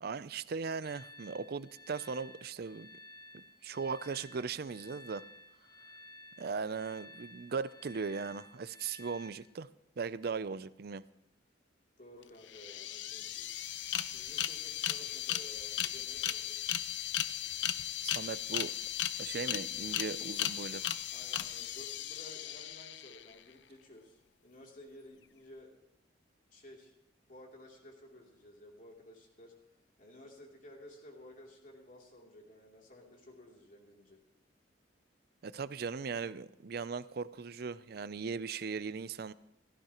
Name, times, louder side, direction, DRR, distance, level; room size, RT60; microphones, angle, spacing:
voice 1, 0.0-2.9 3.3-5.2 6.4-9.7 10.0-11.0 18.0-18.7 19.2-20.8 35.4-39.3, right 5 dB, 55° right, 16 dB, 0.5 m, -38 dB
sound 1, 0.8-9.3, equal, 25° left, 1.3 m, -54 dB
voice 2, 12.0-16.6 21.1-25.8 26.5-26.9 27.2-29.5 30.0-34.2, left 1 dB, 45° left, -1 dB, 3.0 m, -54 dB
sound 2, 12.2-12.3 12.5-23.3, left 11 dB, 70° left, 0.5 m, -36 dB
16.0 x 15.0 x 3.0 m, 0.86 s
head